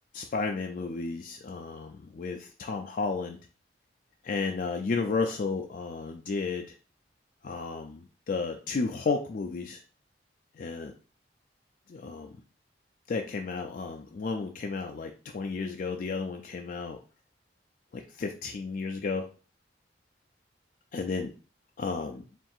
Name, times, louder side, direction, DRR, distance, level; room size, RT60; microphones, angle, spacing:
voice 1, 0.1-3.4 4.2-6.7 7.4-9.8 10.6-10.9 11.9-12.3 13.1-17.0 17.9-19.3 20.9-21.3 21.8-22.2, left 4 dB, 50° left, 2 dB, 0.4 m, -33 dB
4.4 x 3.7 x 2.4 m, 0.36 s
head